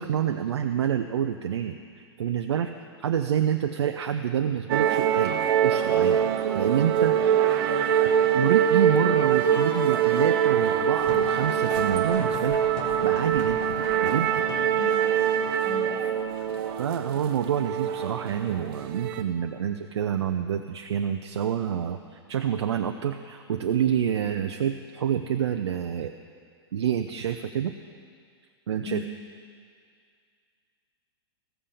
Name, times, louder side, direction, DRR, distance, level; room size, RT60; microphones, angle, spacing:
voice 1, 0.0-2.7 3.0-6.2 6.5-7.2 8.3-12.6 13.0-14.5 16.4-16.5 16.8-26.1 26.7-27.7 28.7-29.0, right 9 dB, 75° right, 7 dB, 0.5 m, -27 dB
sound 1, 4.7-19.2, right 9 dB, 55° right, 0.9 m, -24 dB
voice 2, 9.3-9.6 9.9-10.3 14.8-14.9 15.6-16.0 28.9-29.1, left 5 dB, 20° left, 5 dB, 1.2 m, -38 dB
sound 2, 10.9-16.1, left 5 dB, 50° left, 1.7 m, -40 dB
15.0 x 7.5 x 6.8 m, 2.2 s
hypercardioid pair, 110°, 14 cm